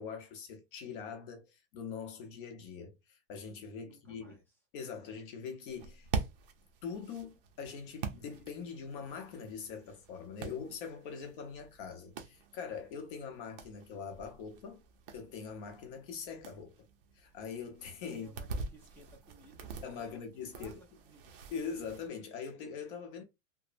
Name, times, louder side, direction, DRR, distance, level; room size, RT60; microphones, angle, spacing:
voice 1, 0.0-4.4 4.7-6.1 6.8-14.8 15.1-16.9 17.1-18.3 19.8-20.8 21.5-23.2, left 6 dB, 45° left, 0.8 m, -43 dB
voice 2, 3.8-4.6 18.1-19.7 20.0-20.2 20.5-21.4, equal, 5° left, 0.5 m, -59 dB
sound 1, 5.7-22.1, right 4 dB, 45° right, 0.6 m, -45 dB
3.0 x 2.0 x 2.5 m
supercardioid pair, 155°, 37 cm